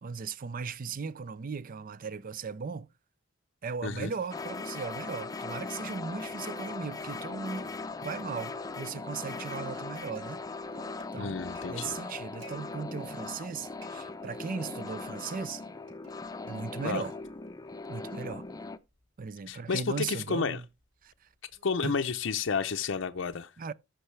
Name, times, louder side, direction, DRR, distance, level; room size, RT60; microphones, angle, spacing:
voice 1, 0.0-2.9 3.6-7.7 8.0-10.4 11.1-11.4 11.7-15.6 16.4-17.1 17.9-18.5 19.2-20.6 21.0-21.3 21.8-22.0 23.6-23.7, right 5 dB, 45° right, 0.5 m, -37 dB
sound 1, 4.3-18.8, left 3 dB, 20° left, 0.6 m, -39 dB
Plucked string instrument, 7.0-7.6 7.9-8.0 8.4-10.4 10.7-12.6 13.0-13.5 13.8-14.8 15.2-16.6 16.9-17.4 17.8-22.0, right 4 dB, 70° right, 3.0 m, -54 dB
voice 2, 11.2-11.9 16.8-17.0 19.5-20.6 21.6-23.5, left 5 dB, 70° left, 0.6 m, -31 dB
14.0 x 5.5 x 3.2 m
head